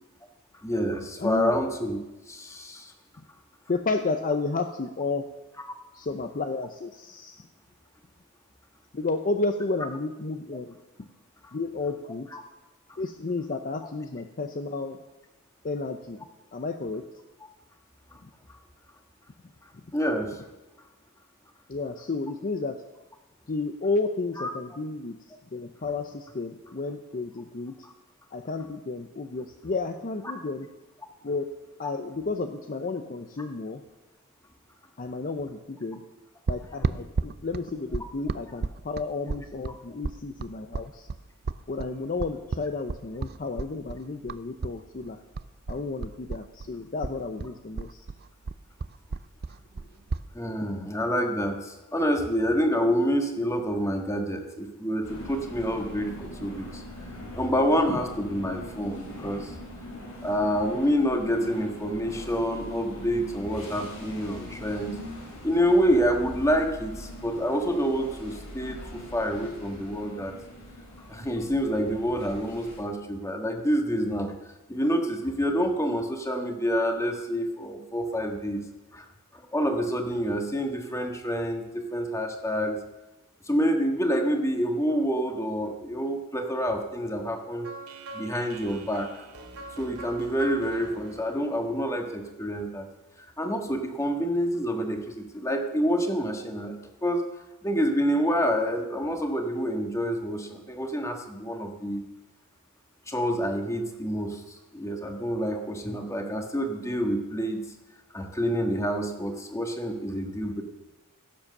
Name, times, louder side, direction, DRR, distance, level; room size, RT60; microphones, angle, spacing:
voice 1, 0.6-2.0 2.3-2.9 11.4-11.5 12.3-12.4 19.9-20.4 24.4-24.5 27.8-27.9 50.3-56.8 57.3-59.5 60.2-65.0 65.4-70.3 71.1-74.3 74.7-78.6 78.9-79.0 79.3-82.8 83.4-87.7 88.1-89.1 89.8-92.9 93.4-97.2 97.6-102.1 103.1-107.6 108.1-110.6, equal, 15° left, 4 dB, 1.5 m, -27 dB
voice 2, 1.2-1.6 3.7-5.3 5.9-7.5 8.9-10.8 11.5-12.3 13.0-15.0 15.6-16.2 16.5-17.0 18.2-18.3 21.7-22.8 23.5-25.2 25.5-27.8 28.3-30.7 31.2-31.5 31.8-33.8 35.0-36.0 36.5-41.1 41.7-45.2 45.7-48.0 50.6-50.8, left 3 dB, 40° left, 7 dB, 0.6 m, -32 dB
sound 1, 36.5-44.8 45.0-46.7 47.0-50.3, right 4 dB, 45° right, 0.5 m, -33 dB
sound 2, 55.0-72.8, left 1 dB, 75° left, 4.9 m, -42 dB
sound 3, 87.6-92.6, right 2 dB, 90° right, 2.2 m, -44 dB
16.0 x 7.4 x 6.6 m, 1.1 s
head